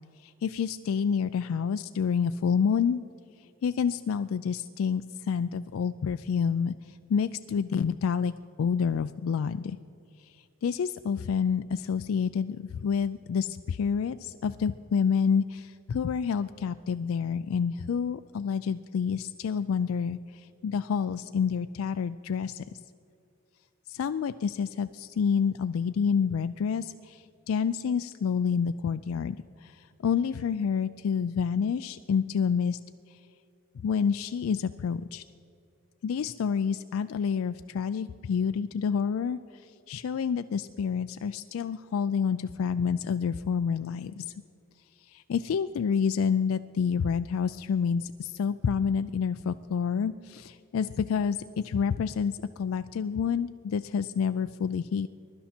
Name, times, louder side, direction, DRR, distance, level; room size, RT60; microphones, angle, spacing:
voice 1, 0.2-3.0 3.6-8.3 8.6-9.8 10.2-10.3 10.6-22.6 23.9-32.8 33.1-33.2 33.7-35.2 36.0-44.3 45.0-55.1, left 6 dB, 75° left, 11 dB, 0.3 m, -28 dB
21.5 x 11.5 x 4.4 m, 2.7 s
head